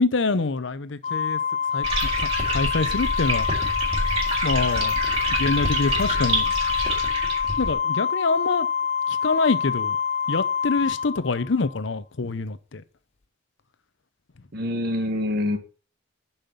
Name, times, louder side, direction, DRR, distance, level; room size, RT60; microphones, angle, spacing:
voice 1, 0.0-1.4 1.7-1.9 2.2-3.5 4.4-5.0 5.3-6.5 7.6-8.7 9.1-10.0 10.3-12.8, left 3 dB, 65° left, 0.7 m, -25 dB
Organ, 1.0-11.8, left 7 dB, 30° left, 0.4 m, -26 dB
sound 1, 1.8-7.7, right 2 dB, 30° right, 4.1 m, -27 dB
voice 2, 14.5-15.6, left 1 dB, 50° right, 1.5 m, -25 dB
7.1 x 5.7 x 7.0 m
head